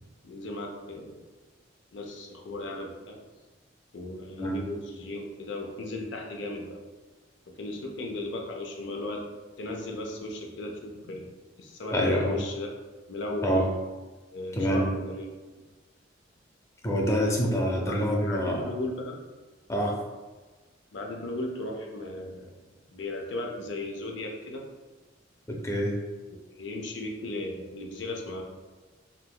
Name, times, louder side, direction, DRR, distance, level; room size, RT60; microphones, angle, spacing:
voice 1, 0.2-1.2 1.9-3.2 3.9-6.8 7.5-9.3 9.6-11.3 11.6-12.7 13.1-13.6 14.3-15.3 17.7-19.2 20.9-22.5 22.9-24.7 26.3-28.4, left 2 dB, 70° left, 1 dB, 0.5 m, -36 dB
voice 2, 11.9-12.4 13.4-13.7 14.5-14.9 16.8-18.7 19.7-20.0 25.5-25.9, equal, 15° left, -1 dB, 0.5 m, -26 dB
3.4 x 2.9 x 2.2 m, 1.3 s
head